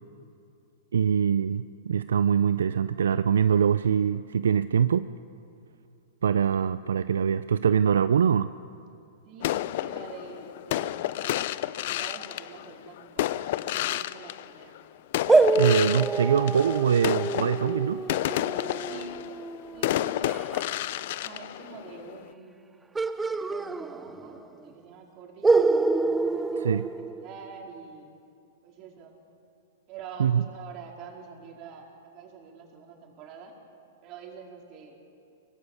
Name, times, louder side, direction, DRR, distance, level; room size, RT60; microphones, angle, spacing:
voice 1, 0.9-5.1 6.2-8.5 15.6-18.0 26.6-26.9 30.2-30.4, right 7 dB, 80° right, 14 dB, 0.4 m, -23 dB
voice 2, 9.3-11.5 11.8-14.8 18.9-19.2 19.7-20.5 21.1-22.7 23.3-26.9 27.2-28.1 28.6-29.2 29.9-31.9 32.1-33.5 34.0-35.0, right 6 dB, 40° right, 1 dB, 4.1 m, -46 dB
sound 1, 9.4-14.8 15.1-22.3, left 14 dB, 60° left, 0.6 m, -31 dB
sound 2, 15.3-20.7 22.9-24.4 24.7-24.8 25.4-27.6, right 3 dB, 10° right, 0.7 m, -26 dB
24.5 x 19.0 x 7.1 m, 2.5 s
hypercardioid pair, 120°, 0 cm